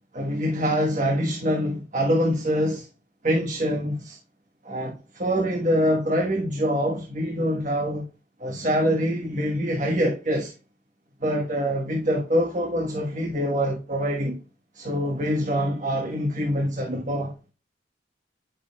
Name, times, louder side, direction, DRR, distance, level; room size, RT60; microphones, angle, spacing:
voice 1, 0.1-2.9 3.2-4.2 4.6-8.1 8.4-10.5 11.2-14.4 14.7-17.5, equal, 45° right, 1.4 m, -25 dB
9.6 x 6.2 x 2.4 m
head